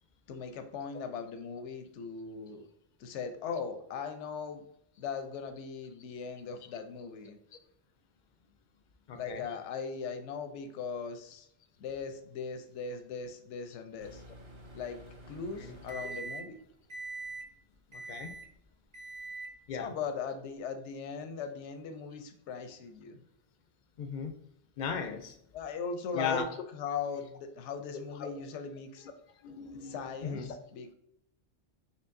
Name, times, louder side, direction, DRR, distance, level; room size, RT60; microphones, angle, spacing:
voice 1, 0.3-2.7 3.0-4.6 5.0-7.4 9.1-11.5 11.8-14.2 14.7-15.0 15.3-16.6 19.7-23.2 25.5-26.4 26.7-29.1 29.8-30.9, left 5 dB, 85° left, 7 dB, 0.9 m, -39 dB
voice 2, 9.1-9.4 15.6-15.8 17.9-18.3 19.7-19.9 24.0-24.3 24.8-25.4 26.1-26.6 28.2-28.4 29.4-30.6, left 5 dB, 55° left, 8 dB, 0.5 m, -37 dB
Microwave oven, 14.0-16.6 16.9-17.5 17.9-18.5 18.9-19.6, right 2 dB, 35° right, 0.5 m, -44 dB
4.5 x 3.2 x 2.6 m, 0.69 s
omnidirectional pair, 1.2 m